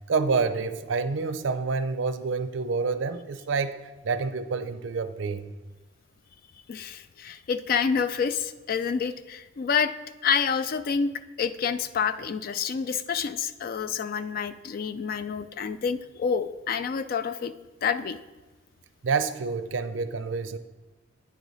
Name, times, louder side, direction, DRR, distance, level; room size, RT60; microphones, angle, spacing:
voice 1, 0.0-5.5 19.0-20.6, right 4 dB, 85° right, 11 dB, 0.5 m, -28 dB
voice 2, 6.7-9.9 10.2-11.1 11.4-17.5 17.8-18.2, left 6 dB, 50° left, 13 dB, 0.3 m, -28 dB
9.3 x 4.8 x 4.0 m, 1.2 s
head